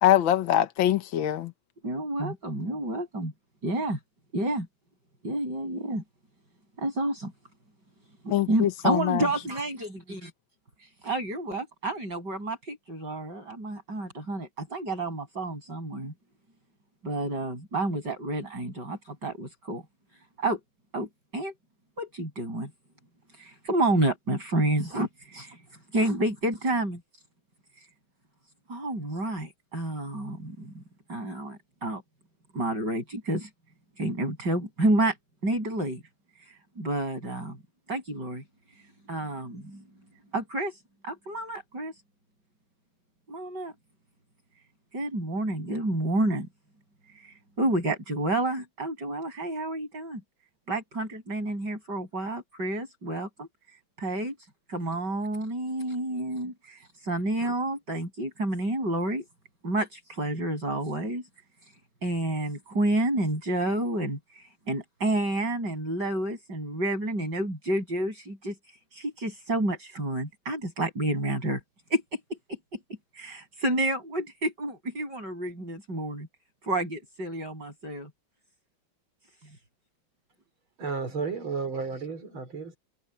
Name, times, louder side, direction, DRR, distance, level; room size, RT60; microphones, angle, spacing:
voice 1, 0.0-1.5 8.3-9.3, left 12 dB, 75° left, 1.8 m, -23 dB
voice 2, 1.8-3.3 3.6-4.0 4.3-4.7 5.2-6.0 6.8-7.3 8.2-10.3 11.0-16.1 17.0-19.8 20.4-20.6 20.9-21.5 22.0-22.7 23.4-25.6 25.9-27.0 28.7-30.8 31.1-32.0 32.5-33.5 34.0-35.2 35.4-36.0 36.5-37.6 37.9-38.4 39.1-39.8 40.3-40.8 41.0-41.9 43.3-43.7 44.9-46.5 47.2-50.2 50.7-53.5 54.0-54.3 54.7-59.2 59.6-61.2 62.0-68.5 68.9-71.6 71.9-72.4 73.1-76.3 76.6-78.1, right 1 dB, 55° right, 8.2 m, -29 dB
voice 3, 80.8-82.8, right 5 dB, 85° right, 5.0 m, -32 dB
omnidirectional pair, 2.2 m